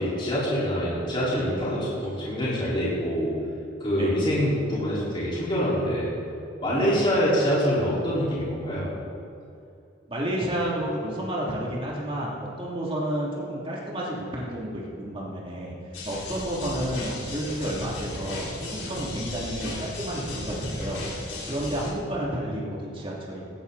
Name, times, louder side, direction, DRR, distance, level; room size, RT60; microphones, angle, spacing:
voice 1, 0.0-3.3 3.8-6.1 6.6-8.9, equal, 30° left, -8 dB, 4.5 m, -25 dB
voice 2, 10.1-15.7 16.0-21.0 21.4-23.4, right 1 dB, 30° right, -5 dB, 2.8 m, -31 dB
sound 1, 15.9-21.9, left 1 dB, 80° left, 3.9 m, -35 dB
17.5 x 15.0 x 4.1 m, 2.6 s
head